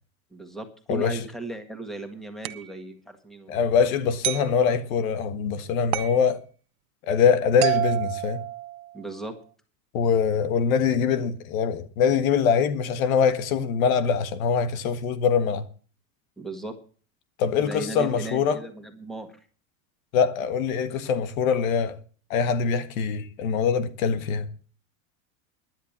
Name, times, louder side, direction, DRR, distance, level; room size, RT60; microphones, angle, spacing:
voice 1, 0.3-3.6 8.9-9.3 16.4-16.7 17.6-19.4, right 2 dB, ahead, 1.7 m, -36 dB
sound 1, 2.4-2.7 4.2-4.5 5.9-6.2 7.6-9.0, right 16 dB, 80° right, 1.1 m, -28 dB
voice 2, 3.5-6.4 7.1-8.4 9.9-15.6 17.4-18.6 20.1-22.0 22.3-24.5, left 6 dB, 80° left, 1.5 m, -23 dB
10.5 x 9.8 x 7.3 m
supercardioid pair, 145°, 41 cm